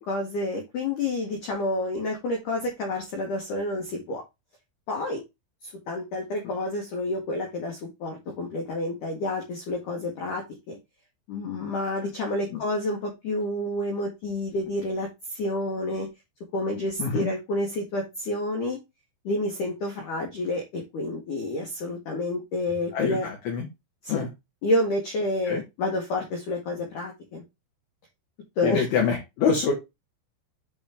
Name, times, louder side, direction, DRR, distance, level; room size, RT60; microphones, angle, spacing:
voice 1, 0.1-4.2 4.9-5.2 5.6-10.8 11.3-16.1 16.5-18.8 19.2-23.3 24.0-24.2 24.6-27.4 28.6-28.8, left 1 dB, 85° left, 1 dB, 1.8 m, -29 dB
voice 2, 22.9-23.7 24.1-24.3 25.4-25.6 28.6-29.7, left 6 dB, 65° left, 1 dB, 2.7 m, -25 dB
8.3 x 3.6 x 3.4 m, 0.22 s
omnidirectional pair, 5.8 m